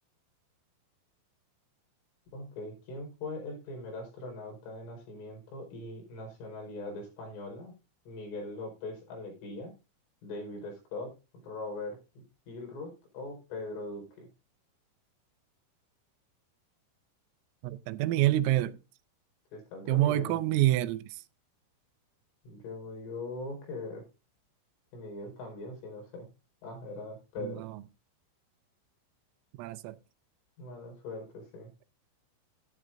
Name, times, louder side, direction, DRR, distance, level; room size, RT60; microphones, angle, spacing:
voice 1, 2.3-7.7 8.1-9.7 10.2-11.1 11.4-14.3 19.5-20.4 22.5-24.0 24.9-26.3 26.6-27.6 30.6-31.7, left 2 dB, 70° left, 7.0 m, -41 dB
voice 2, 17.6-18.8 19.9-21.2 27.4-27.8 29.6-30.0, right 15 dB, 85° right, 3.4 m, -27 dB
12.0 x 12.0 x 2.6 m
omnidirectional pair, 5.9 m